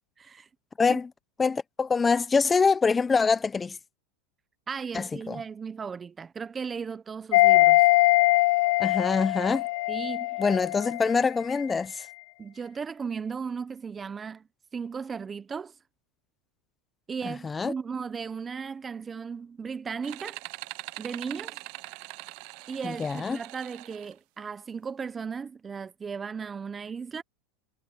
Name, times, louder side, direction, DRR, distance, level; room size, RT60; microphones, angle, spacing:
voice 1, 0.2-0.5 0.9-1.0 4.7-7.9 9.9-10.4 12.4-14.5 14.7-15.7 17.1-20.4 21.0-21.6 22.7-27.2, right 6 dB, 20° right, 0.8 m, -36 dB
voice 2, 0.8-1.1 1.4-3.8 4.9-5.4 8.8-9.7 10.4-12.1 17.4-17.7 22.8-23.4, left 5 dB, 15° left, 0.9 m, -25 dB
sound 1, 7.3-11.2 11.5-11.6, left 21 dB, 65° left, 0.4 m, -22 dB
sound 2, 20.0-24.1, right 26 dB, 60° right, 0.7 m, -42 dB
hypercardioid pair, 115°, 0 cm